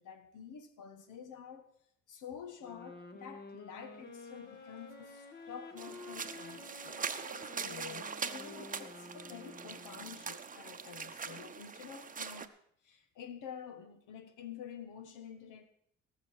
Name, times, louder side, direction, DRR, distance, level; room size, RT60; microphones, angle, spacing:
voice 1, 0.0-1.6 2.1-7.3 7.5-12.5 12.8-15.6, left 7 dB, 90° left, 1.6 m, -49 dB
sound 1, 2.6-10.3, left 3 dB, 35° left, 1.5 m, -51 dB
Applause, 3.8-12.5, equal, 60° left, 6.3 m, -70 dB
sound 2, 5.8-12.5, right 6 dB, 25° right, 0.8 m, -42 dB
17.5 x 6.7 x 6.5 m
cardioid pair, 90°, 30 cm